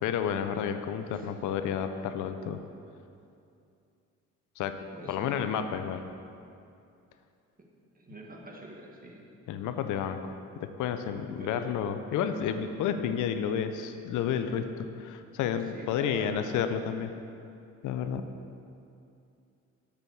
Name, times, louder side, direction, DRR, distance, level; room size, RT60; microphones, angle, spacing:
voice 1, 0.0-2.6 4.6-6.0 9.5-17.1 17.8-18.2, left 8 dB, 80° left, 9 dB, 0.5 m, -31 dB
voice 2, 4.9-5.3 7.9-9.2 11.3-11.9 15.2-15.3 15.7-16.4, right 1 dB, 30° right, -1 dB, 1.4 m, -45 dB
7.0 x 6.8 x 4.6 m, 2.6 s
cardioid pair, 90°, 30 cm